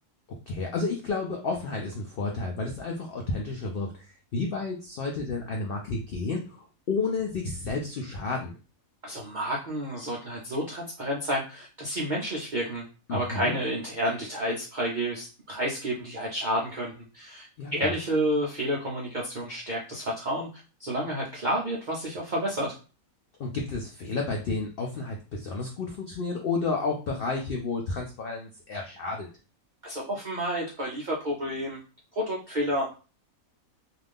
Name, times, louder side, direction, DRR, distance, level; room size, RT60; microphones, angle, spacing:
voice 1, 0.5-8.6 13.1-13.6 17.6-17.9 23.4-29.3, left 3 dB, 75° left, 1 dB, 0.5 m, -31 dB
voice 2, 9.0-12.8 13.1-17.5 17.7-20.5 20.8-22.7 29.8-31.8 32.1-32.8, equal, 65° right, -3 dB, 0.4 m, -30 dB
2.5 x 2.4 x 3.4 m, 0.35 s
omnidirectional pair, 1.5 m